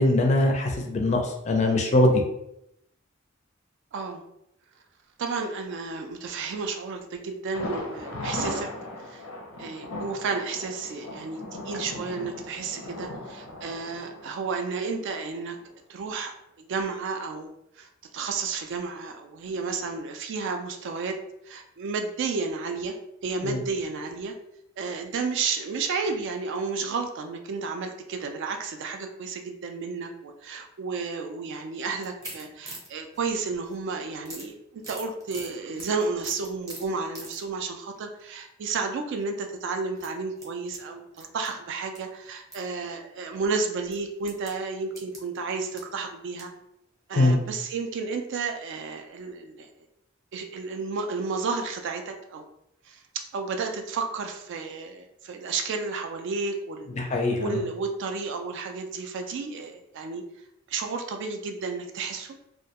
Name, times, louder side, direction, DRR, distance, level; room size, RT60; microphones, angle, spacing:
voice 1, 0.0-2.2 23.4-23.6 47.2-47.4 57.0-57.6, left 2 dB, 35° left, 3 dB, 0.4 m, -22 dB
voice 2, 3.9-4.2 5.2-8.7 9.0-9.3 9.6-15.6 15.9-21.2 21.4-23.0 23.2-24.4 24.8-46.5 47.1-49.7 50.3-52.5 52.9-57.0 57.4-60.2 60.7-62.3, right 4 dB, 60° right, 5 dB, 0.3 m, -32 dB
Thunder, 7.5-15.3 15.6-15.7 16.1-16.2, left 1 dB, 90° left, 0.5 m, -37 dB
sound 1, 32.0-33.8 34.2-37.5 37.9-38.2 39.1-39.3 39.9-42.0 42.2-42.6 43.0-43.1 43.9-46.6 47.1-47.2 47.5-47.6, right 1 dB, 20° right, 0.7 m, -44 dB
2.2 x 2.1 x 2.8 m, 0.81 s
head